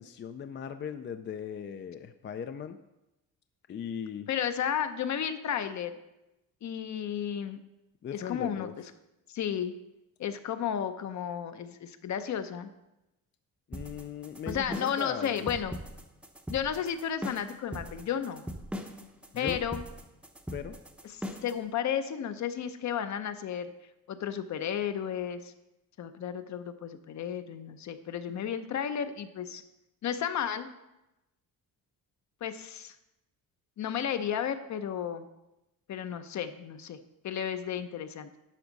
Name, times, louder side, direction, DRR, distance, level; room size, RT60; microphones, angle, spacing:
voice 1, 0.0-2.8 3.7-4.3 8.0-8.7 13.7-15.5 19.3-19.6 20.5-20.8, left 8 dB, 35° left, 9 dB, 0.4 m, -38 dB
voice 2, 4.3-6.0 6.6-7.6 8.1-8.7 9.3-9.7 10.2-12.7 14.5-15.8 16.5-18.4 19.3-19.8 21.0-23.7 24.1-25.5 26.0-29.6 30.0-30.7 32.4-33.0 33.8-35.3 35.9-38.3, left 8 dB, 55° left, 10 dB, 0.7 m, -33 dB
sound 1, 13.7-21.6, equal, 5° right, 0.6 m, -40 dB
11.5 x 6.2 x 4.0 m, 0.95 s
cardioid pair, 145°, 35 cm